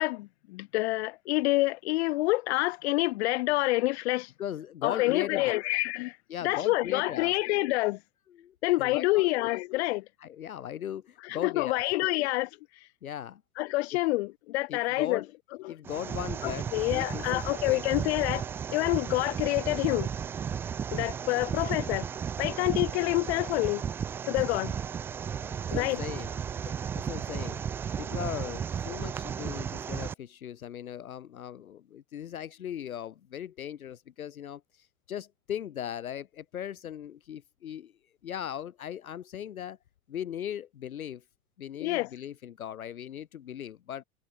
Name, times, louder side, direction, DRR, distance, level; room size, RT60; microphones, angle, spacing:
voice 1, 0.0-4.3 4.8-6.2 6.4-8.0 8.6-10.0 11.2-12.5 13.6-15.2 15.6-15.7 16.4-18.4 18.7-20.1 20.9-22.1 22.4-23.8 24.3-24.7 25.7-26.0 41.8-42.1, left 20 dB, 50° left, 1.3 m, -27 dB
voice 2, 4.4-5.5 6.3-7.3 8.4-9.3 10.2-12.1 13.0-13.4 14.7-15.3 15.7-17.8 25.4-26.3 26.9-27.6 28.0-37.9 38.2-39.8 40.1-41.2 41.6-44.0, left 10 dB, 75° left, 0.8 m, -38 dB
sound 1, 15.8-30.1, right 7 dB, 5° right, 0.3 m, -34 dB
figure-of-eight pair, 90°, 43 cm